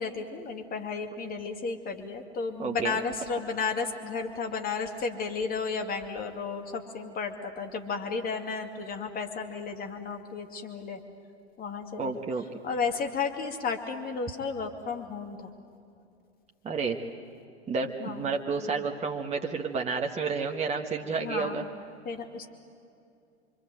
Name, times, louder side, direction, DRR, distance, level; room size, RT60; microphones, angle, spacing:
voice 1, 0.0-11.0 11.6-12.2 12.6-15.5 18.0-18.8 21.2-21.7 22.0-22.5, left 5 dB, 25° left, 4 dB, 2.6 m, -33 dB
voice 2, 2.6-2.9 12.0-12.4 16.6-17.0 17.7-21.6, right 5 dB, 20° right, 2 dB, 1.6 m, -30 dB
26.5 x 24.5 x 8.0 m, 2.6 s
figure-of-eight pair, 95°, 33 cm